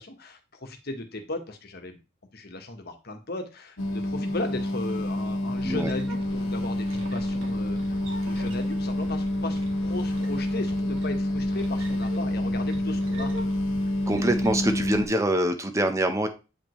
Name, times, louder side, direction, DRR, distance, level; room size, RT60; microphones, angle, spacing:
voice 1, 0.0-2.0 2.3-13.3, left 2 dB, 50° left, 5 dB, 1.3 m, -36 dB
sound 1, 3.8-15.1, left 1 dB, 85° left, 1.2 m, -28 dB
sound 2, 5.6-15.1, right 1 dB, 80° right, 1.8 m, -43 dB
voice 2, 14.1-16.3, right 1 dB, 15° right, 7 dB, 0.8 m, -25 dB
8.7 x 5.1 x 3.1 m, 0.30 s
head